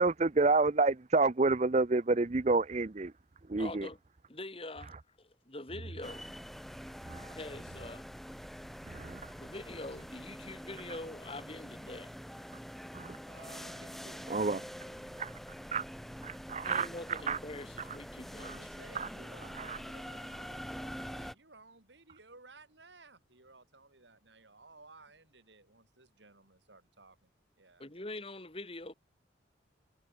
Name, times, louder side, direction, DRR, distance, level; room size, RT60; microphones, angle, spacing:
voice 1, 0.0-3.1 3.5-3.9 7.1-7.3 8.9-9.2 12.9-13.2 14.3-14.6 15.2-15.3 15.7-15.8 16.2-16.9 17.3-17.4 18.4-18.6 19.0-19.1 19.6-19.8, right 3 dB, 35° right, 0.6 m, -29 dB
voice 2, 3.6-4.0 4.3-6.3 7.3-8.1 9.4-12.1 16.6-18.7 27.8-28.9, left 2 dB, 30° left, 2.2 m, -44 dB
sound 1, 6.0-21.3, equal, ahead, 5.1 m, -45 dB
voice 3, 13.2-15.3 18.3-27.3 27.6-27.9, right 3 dB, 75° right, 5.9 m, -57 dB
head